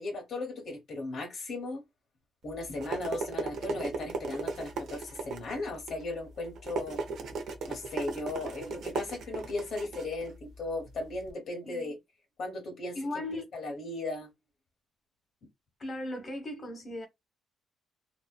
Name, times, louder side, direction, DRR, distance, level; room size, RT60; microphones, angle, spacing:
voice 1, 0.0-1.8 2.4-7.0 7.7-12.0 12.4-13.0 13.5-14.3, left 2 dB, 60° left, 0.9 m, -36 dB
sound 1, 2.4-11.3, right 4 dB, 65° right, 0.6 m, -37 dB
voice 2, 12.9-13.5 15.8-17.1, left 1 dB, 30° left, 1.0 m, -37 dB
2.7 x 2.1 x 2.2 m
cardioid pair, 90°, 0 cm